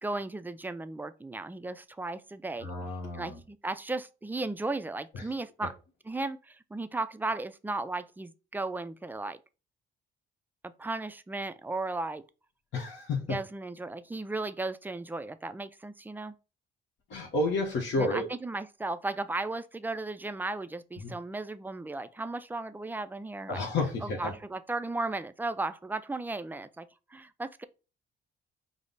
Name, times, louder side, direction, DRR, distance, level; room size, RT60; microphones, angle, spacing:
voice 1, 0.0-2.7 3.1-5.8 6.0-9.4 10.6-12.2 13.3-16.3 18.0-23.6 24.0-27.6, right 2 dB, 10° right, 0.4 m, -35 dB
voice 2, 2.6-3.4 5.1-5.2 12.7-13.2 17.1-18.3 21.0-21.1 23.5-24.3, left 2 dB, 70° left, 1.1 m, -31 dB
5.1 x 2.0 x 3.9 m
cardioid pair, 90°, 20 cm